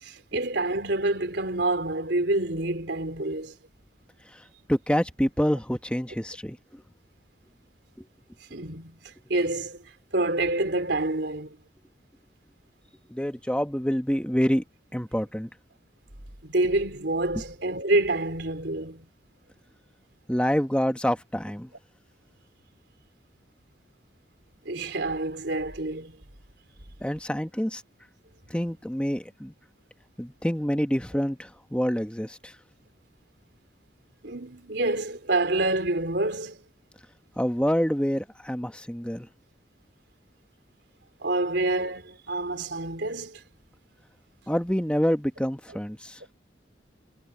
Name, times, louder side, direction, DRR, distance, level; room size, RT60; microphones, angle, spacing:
voice 1, 0.0-3.6 8.5-9.8 10.1-11.6 16.4-19.1 24.6-26.2 34.2-36.6 41.2-43.4, right 2 dB, 70° right, 3.4 m, -27 dB
voice 2, 4.7-6.8 8.0-8.1 13.1-14.6 14.9-15.5 20.3-21.7 27.0-27.8 28.5-29.5 30.2-32.5 37.4-39.3 44.5-46.2, equal, 5° left, 1.1 m, -27 dB
head